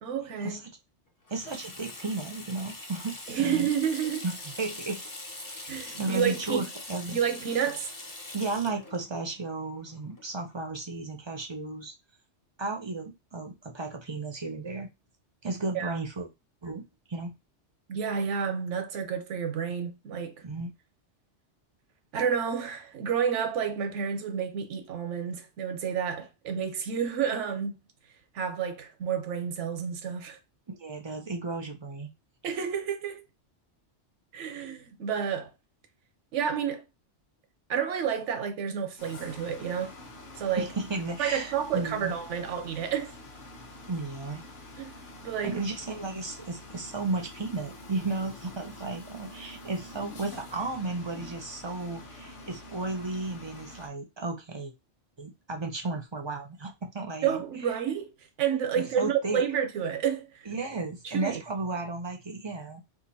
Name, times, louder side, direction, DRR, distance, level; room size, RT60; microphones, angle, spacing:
voice 1, 0.0-0.6 3.3-4.2 5.7-6.6 7.1-7.9 15.7-16.0 17.9-20.3 22.1-27.8 28.3-30.4 32.4-33.2 34.3-35.5 36.3-36.8 37.7-39.9 40.4-40.7 41.2-43.1 44.8-45.6 57.2-58.1 58.4-60.3 61.0-61.4, right 7 dB, 85° right, 1.0 m, -30 dB
Water tap faucet / Sink (filling or washing), 1.3-10.6, left 2 dB, 25° left, 0.5 m, -43 dB
voice 2, 1.3-3.7 4.2-5.0 6.0-7.2 8.3-11.9 12.6-14.9 15.4-16.3 16.6-16.8 17.1-17.3 20.4-20.7 30.7-32.1 40.6-42.1 43.9-44.4 45.4-54.7 55.2-57.4 58.8-59.4 60.5-62.8, right 3 dB, 40° right, 0.4 m, -34 dB
sound 1, 39.0-53.9, left 2 dB, 50° left, 0.9 m, -46 dB
2.9 x 2.4 x 4.0 m
omnidirectional pair, 1.2 m